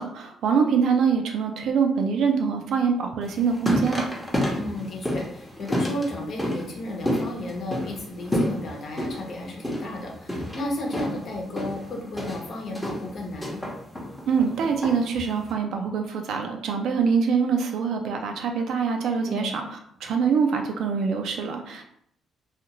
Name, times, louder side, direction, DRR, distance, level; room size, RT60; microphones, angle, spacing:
voice 1, 0.0-4.1 14.3-21.9, right 6 dB, 75° right, 4 dB, 0.4 m, -24 dB
sound 1, 3.2-15.5, left 1 dB, 5° left, 0.8 m, -30 dB
voice 2, 4.5-13.6 19.3-19.5, left 1 dB, 55° left, 0 dB, 0.8 m, -33 dB
2.5 x 2.4 x 2.9 m, 0.69 s
cardioid pair, 90°, 0 cm